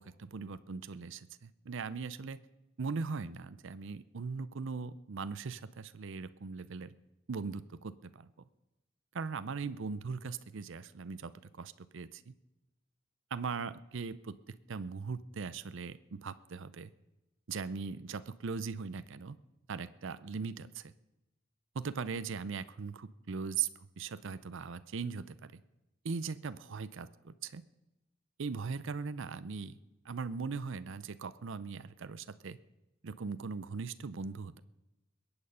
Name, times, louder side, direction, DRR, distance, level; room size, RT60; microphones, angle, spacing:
voice 1, 0.0-2.4 2.8-6.9 7.3-8.3 9.1-12.3 13.3-16.9 17.5-19.4 19.7-20.9 21.7-25.6 26.0-27.6 28.4-29.8 30.0-32.6 33.0-34.6, right 5 dB, 60° right, 14 dB, 0.5 m, -39 dB
21.5 x 8.8 x 5.6 m, 0.96 s
head